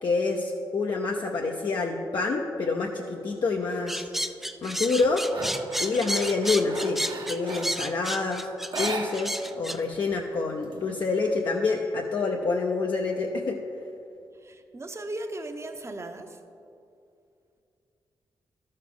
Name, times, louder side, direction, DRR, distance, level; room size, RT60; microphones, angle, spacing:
voice 1, 0.0-4.1 4.6-5.2 5.8-7.0 7.3-8.5 8.8-13.6, left 3 dB, 60° left, 0 dB, 0.7 m, -27 dB
sound 1, 3.7-4.0 4.5-7.9 8.6-9.6 9.9-10.0 10.3-11.3, right 3 dB, 65° right, 1.1 m, -38 dB
sound 2, 3.9-9.8, right 1 dB, 5° right, 0.4 m, -31 dB
voice 2, 14.4-16.4, right 1 dB, 30° right, 6 dB, 0.8 m, -37 dB
12.0 x 6.5 x 3.8 m, 2.6 s
cardioid pair, 60°, 9 cm